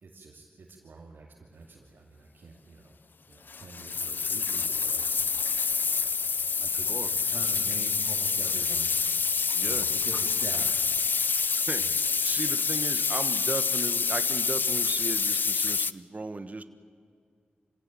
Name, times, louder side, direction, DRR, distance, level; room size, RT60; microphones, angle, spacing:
voice 1, 0.0-2.9 3.3-9.2 9.6-10.8 11.8-12.0, right 3 dB, 80° right, -3 dB, 2.8 m, -46 dB
sound 1, 3.5-15.9, left 5 dB, 70° left, 0.5 m, -27 dB
voice 2, 9.5-9.9 11.7-11.8 12.2-16.6, right 3 dB, 45° right, 10 dB, 1.4 m, -36 dB
25.5 x 17.0 x 9.1 m, 2.3 s
cardioid pair, 55°, 4 cm